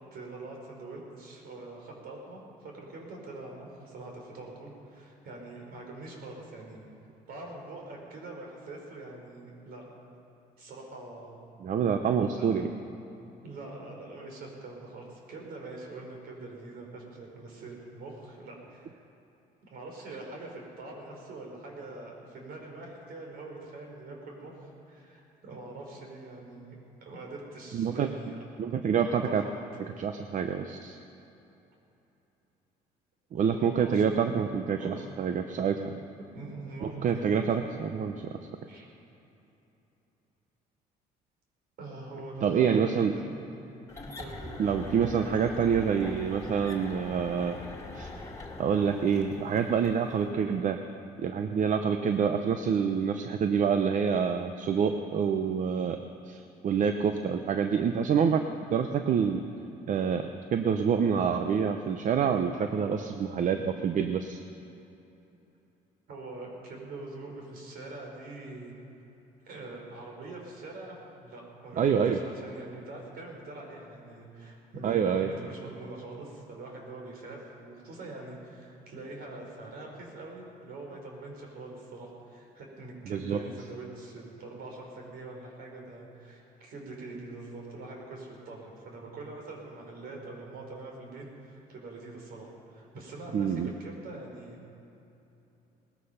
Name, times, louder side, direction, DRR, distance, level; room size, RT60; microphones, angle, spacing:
voice 1, 0.1-6.9 7.3-9.9 10.6-11.4 12.4-12.8 13.4-19.0 19.7-28.4 29.0-29.3 33.5-34.5 34.8-35.1 36.3-37.4 38.7-38.9 41.8-43.6 44.2-44.7 66.1-68.7 69.4-94.6, right 2 dB, 65° right, 0 dB, 4.3 m, -44 dB
voice 2, 11.6-12.7 27.7-28.1 28.6-29.4 29.8-31.0 33.3-36.0 36.8-38.4 42.4-43.1 44.6-47.6 47.9-48.1 48.6-50.8 51.2-56.0 56.3-59.4 59.9-64.4 71.8-72.2 74.8-75.3 83.1-83.4 93.3-93.7, right 7 dB, 50° right, 7 dB, 0.7 m, -27 dB
sound 1, 43.9-50.3, left 2 dB, 20° left, 2.2 m, -42 dB
19.0 x 13.5 x 5.7 m, 2.9 s
cardioid pair, 110°, 17 cm